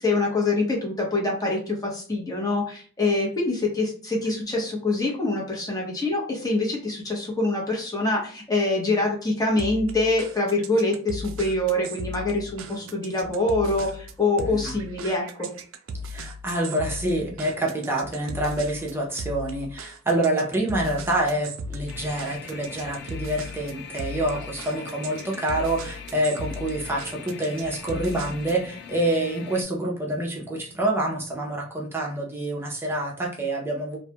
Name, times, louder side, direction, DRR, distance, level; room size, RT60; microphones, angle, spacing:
voice 1, 0.0-15.5, left 2 dB, 20° left, -2 dB, 0.8 m, -25 dB
sound 1, 9.6-28.7, equal, 70° right, 0.4 m, -38 dB
voice 2, 14.4-14.8 16.1-34.0, right 1 dB, 10° right, -2 dB, 0.6 m, -27 dB
sound 2, 21.9-29.6, left 7 dB, 50° left, 0.3 m, -42 dB
2.3 x 2.1 x 2.8 m, 0.43 s
head